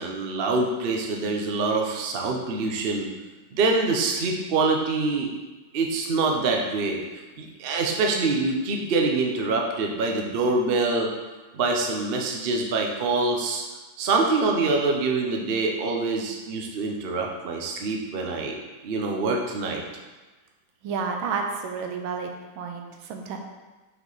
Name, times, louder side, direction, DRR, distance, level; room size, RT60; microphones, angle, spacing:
voice 1, 0.0-3.1 3.5-5.3 5.7-7.0 7.4-11.1 11.5-13.6 14.0-18.5 18.8-19.8, right 3 dB, 70° right, 1 dB, 0.5 m, -25 dB
voice 2, 20.8-22.3 22.6-23.4, right 5 dB, 85° right, 3 dB, 1.6 m, -30 dB
5.8 x 4.7 x 4.0 m, 1.2 s
omnidirectional pair, 2.2 m